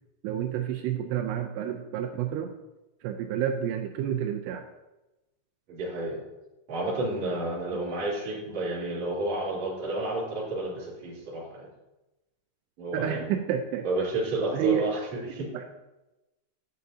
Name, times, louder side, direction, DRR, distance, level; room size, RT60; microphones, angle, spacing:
voice 1, 0.2-2.5 3.0-4.6 12.9-14.1 14.5-14.9 15.5-15.7, right 9 dB, 80° right, 4 dB, 2.5 m, -29 dB
voice 2, 5.7-6.2 6.7-11.7 12.8-13.2 13.8-15.0 15.3-15.5, right 2 dB, 40° right, -9 dB, 3.8 m, -31 dB
10.5 x 9.7 x 2.7 m, 1.0 s
omnidirectional pair, 5.2 m